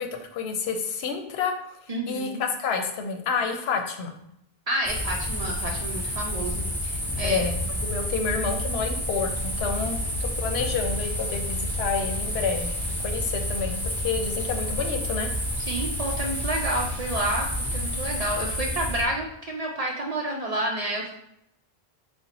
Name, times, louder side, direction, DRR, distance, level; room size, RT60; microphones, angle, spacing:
voice 1, 0.0-1.8 2.1-4.1 7.2-7.5 7.8-12.7 13.0-15.3, left 5 dB, 85° left, 5 dB, 0.8 m, -29 dB
voice 2, 1.9-2.4 4.7-7.4 15.6-21.1, right 1 dB, 55° right, 0 dB, 0.4 m, -30 dB
sound 1, 4.8-19.0, equal, ahead, 0.7 m, -29 dB
4.1 x 2.1 x 3.9 m, 0.77 s
omnidirectional pair, 1.0 m